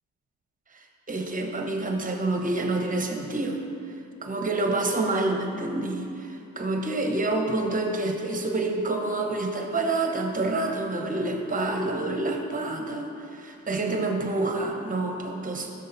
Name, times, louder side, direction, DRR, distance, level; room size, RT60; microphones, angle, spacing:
voice 1, 0.7-3.6 4.2-15.7, right 2 dB, 25° right, 2 dB, 1.0 m, -28 dB
11.5 x 6.6 x 2.7 m, 2.6 s
cardioid pair, 90°, 30 cm